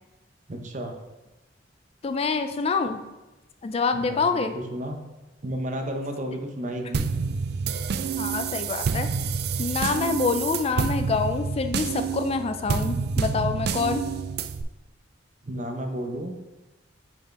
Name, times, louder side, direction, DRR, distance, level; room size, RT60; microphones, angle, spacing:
voice 1, 0.5-0.9 3.9-5.0 5.4-7.1 15.4-16.3, right 1 dB, 40° right, 4 dB, 0.7 m, -32 dB
voice 2, 2.0-3.0 3.6-4.6 8.2-9.1 9.6-14.0, left 4 dB, 35° left, 8 dB, 0.3 m, -26 dB
sound 1, 6.9-14.6, right 5 dB, 55° right, 0.4 m, -28 dB
6.2 x 4.5 x 4.5 m, 1.1 s
head